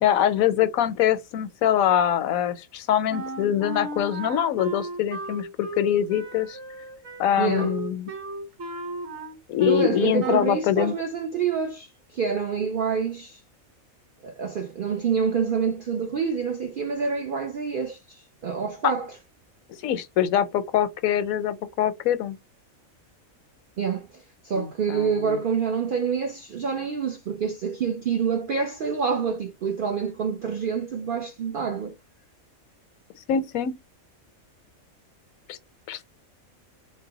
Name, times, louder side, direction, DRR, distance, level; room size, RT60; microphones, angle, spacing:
voice 1, 0.0-6.6 7.2-8.1 9.5-10.9 18.8-18.9 19.8-22.4 24.5-25.4 33.3-33.8 35.5-35.6 35.9-36.1, left 10 dB, 80° left, 1.0 m, -24 dB
Wind instrument woodwind instrument, 3.1-9.9 10.2-10.6, right 2 dB, 55° right, 1.4 m, -35 dB
voice 2, 7.4-7.7 9.7-13.4 14.2-19.1 23.8-31.9, right 6 dB, 70° right, 0.5 m, -27 dB
3.9 x 2.1 x 3.9 m
omnidirectional pair, 1.4 m